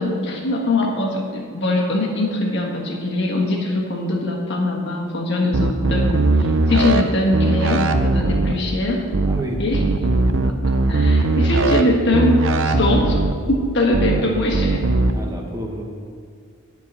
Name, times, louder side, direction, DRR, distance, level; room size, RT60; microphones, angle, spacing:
voice 1, 0.0-6.1 6.4-9.0 9.6-9.8 10.4-12.4 12.6-13.2 13.5-14.8, left 2 dB, 50° left, -2 dB, 1.5 m, -22 dB
sound 1, 5.5-7.0 7.3-8.5 9.1-9.4 9.7-11.8 12.1-13.3 13.9-14.2 14.5-15.1, right 3 dB, 60° right, 0.5 m, -19 dB
voice 2, 9.3-9.9 14.0-14.3 15.1-15.8, right 1 dB, 15° right, 0 dB, 1.0 m, -30 dB
11.5 x 4.8 x 6.8 m, 2.2 s
head